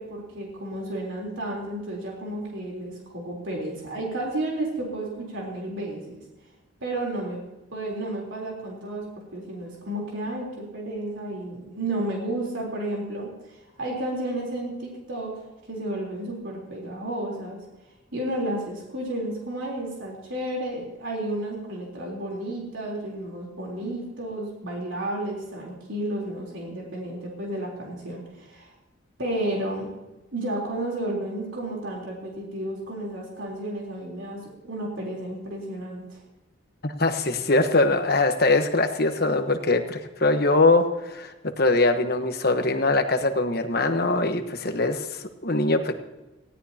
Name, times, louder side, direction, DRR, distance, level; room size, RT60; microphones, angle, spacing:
voice 1, 0.0-6.2 6.8-7.4 7.7-9.1 9.3-17.6 18.1-28.7 29.2-29.9 30.3-36.2, right 1 dB, 70° right, -2 dB, 3.7 m, -32 dB
voice 2, 36.8-46.0, left 2 dB, 45° left, 7 dB, 1.2 m, -22 dB
19.0 x 16.5 x 2.9 m, 1.0 s
head